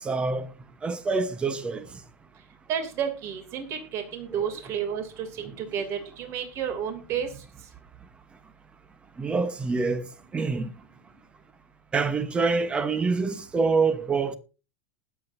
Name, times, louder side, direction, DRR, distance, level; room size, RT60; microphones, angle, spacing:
voice 1, 0.0-0.5 0.8-1.8 4.4-4.5 9.2-10.1 10.3-10.7 11.9-14.3, right 4 dB, 15° right, 1.1 m, -26 dB
voice 2, 2.7-7.3, right 8 dB, 40° right, 2.9 m, -31 dB
20.0 x 8.0 x 2.7 m
supercardioid pair, 150°, 7 cm